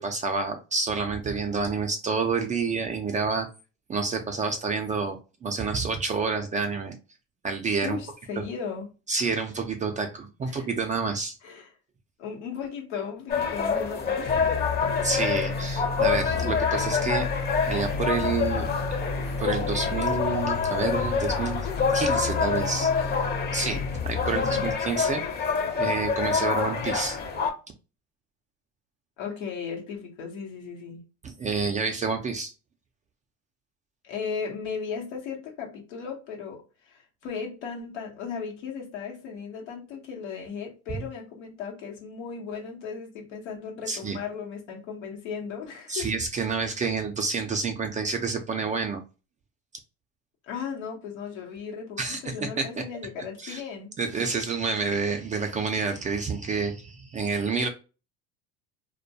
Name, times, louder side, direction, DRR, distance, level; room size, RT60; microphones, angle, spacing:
voice 1, 0.0-3.5 3.9-6.9 7.4-8.0 8.4-8.5 9.1-11.4 15.0-17.3 17.7-18.7 19.4-21.7 21.9-22.9 23.5-25.2 25.8-27.2 31.2-32.5 43.9-44.2 45.9-49.0 52.0-52.9 53.4-53.6 54.0-57.7, right 4 dB, 20° right, 0.3 m, -28 dB
voice 2, 7.8-8.9 10.5-10.7 11.4-11.7 12.2-14.6 24.3-24.7 29.2-31.0 34.0-46.1 50.4-54.0, left 6 dB, 90° left, 0.9 m, -36 dB
sound 1, 13.3-27.5, left 5 dB, 30° left, 0.6 m, -27 dB
sound 2, 14.3-24.8, left 4 dB, 60° left, 0.8 m, -33 dB
2.2 x 2.1 x 2.7 m
supercardioid pair, 95°, 35 cm